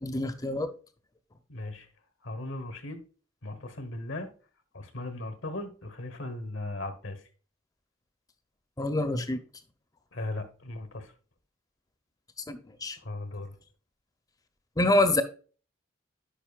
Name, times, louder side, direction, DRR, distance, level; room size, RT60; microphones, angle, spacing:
voice 1, 0.0-0.7 8.8-9.4 12.5-13.0 14.8-15.2, left 2 dB, 20° left, 0.6 m, -26 dB
voice 2, 1.5-1.9 2.2-3.0 3.4-4.3 4.7-7.2 10.1-11.1 13.0-13.5, left 2 dB, 70° left, 1.1 m, -37 dB
10.0 x 5.2 x 2.3 m
head